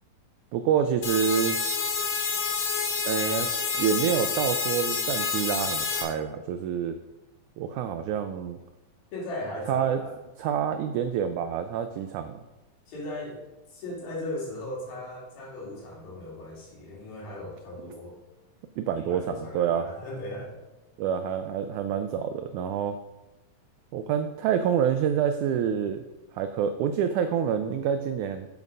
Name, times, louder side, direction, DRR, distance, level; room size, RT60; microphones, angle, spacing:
voice 1, 0.5-1.6 3.1-3.5 3.7-7.0 7.6-8.6 9.7-10.0 10.4-12.4 18.8-19.9 21.0-23.0 23.9-26.0 26.3-28.5, right 8 dB, 90° right, 9 dB, 1.7 m, -27 dB
sound 1, 1.0-6.0, left 5 dB, 60° left, 1.9 m, -28 dB
voice 2, 9.1-10.2 12.9-13.4 13.7-18.2 18.9-20.6, left 1 dB, 90° left, -3 dB, 4.4 m, -37 dB
8.0 x 7.3 x 5.3 m, 1.0 s
omnidirectional pair, 4.1 m